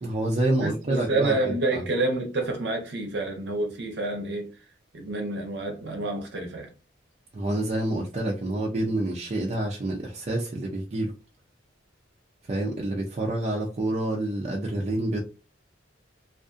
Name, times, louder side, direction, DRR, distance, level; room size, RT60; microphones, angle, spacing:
voice 1, 0.0-1.8 7.3-11.1 12.5-15.2, right 1 dB, 35° right, 0.4 m, -28 dB
voice 2, 0.6-4.5 4.9-6.7, right 2 dB, 65° right, 0.7 m, -28 dB
2.5 x 2.4 x 2.4 m
head